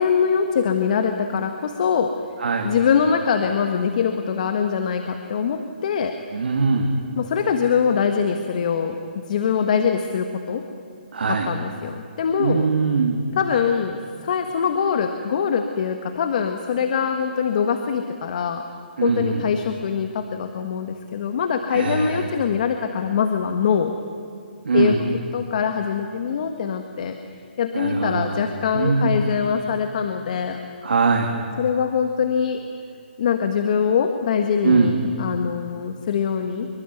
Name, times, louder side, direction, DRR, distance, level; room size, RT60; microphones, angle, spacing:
voice 1, 0.0-2.1 2.6-6.1 7.2-10.6 11.3-12.7 13.3-18.6 19.0-23.9 24.7-25.0 25.3-27.1 27.6-30.6 31.6-32.6 33.2-36.7, left 6 dB, 45° left, 6 dB, 1.6 m, -23 dB
voice 2, 2.4-2.7 6.3-7.0 11.1-11.5 12.4-13.2 19.0-19.4 21.7-22.3 24.6-25.0 27.7-28.4 28.7-29.3 30.8-31.4 34.6-35.0, right 4 dB, 75° right, 1 dB, 2.9 m, -21 dB
26.0 x 23.0 x 9.4 m, 2.3 s
hypercardioid pair, 160°, 6 cm